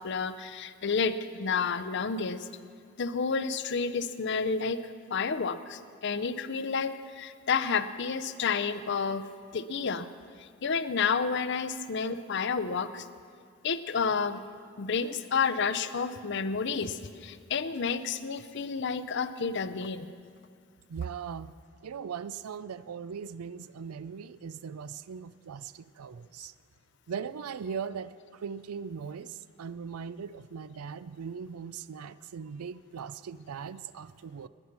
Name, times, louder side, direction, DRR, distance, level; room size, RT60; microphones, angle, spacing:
voice 1, 0.0-2.5 3.0-9.3 9.5-10.1 10.4-13.1 13.6-14.4 14.8-20.1, left 5 dB, 50° left, 13 dB, 0.6 m, -30 dB
voice 2, 20.9-21.5 21.8-26.5 27.1-34.5, right 6 dB, 80° right, 16 dB, 0.4 m, -39 dB
20.5 x 9.7 x 5.9 m, 2.2 s
head